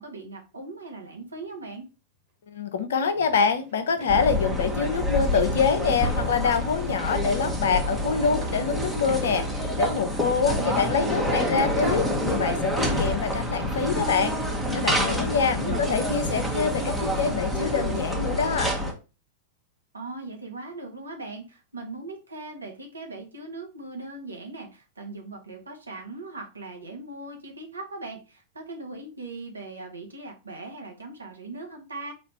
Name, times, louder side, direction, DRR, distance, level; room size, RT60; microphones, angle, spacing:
voice 1, 0.0-1.9 10.5-12.1 15.4-15.9 19.9-32.1, right 2 dB, 85° right, 3 dB, 1.1 m, -39 dB
sound 1, 1.2-1.3 3.1-17.0, right 2 dB, 50° right, 1.5 m, -48 dB
voice 2, 2.5-14.4 14.7-18.7, left 5 dB, 70° left, 10 dB, 0.6 m, -25 dB
sound 2, 4.1-18.9, equal, 5° right, 1.1 m, -27 dB
4.2 x 2.5 x 4.3 m, 0.31 s
hypercardioid pair, 100°, 0 cm